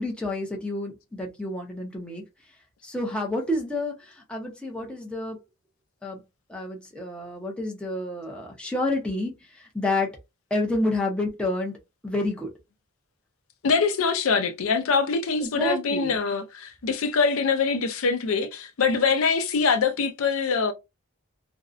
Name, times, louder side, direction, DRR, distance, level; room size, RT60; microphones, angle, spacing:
voice 1, 0.0-2.2 2.8-5.4 6.0-6.2 6.5-10.2 10.5-11.7 12.0-12.5 15.4-16.2, left 2 dB, 5° left, 0.5 m, -29 dB
voice 2, 13.6-20.7, left 5 dB, 75° left, 0.5 m, -24 dB
2.5 x 2.0 x 2.4 m
head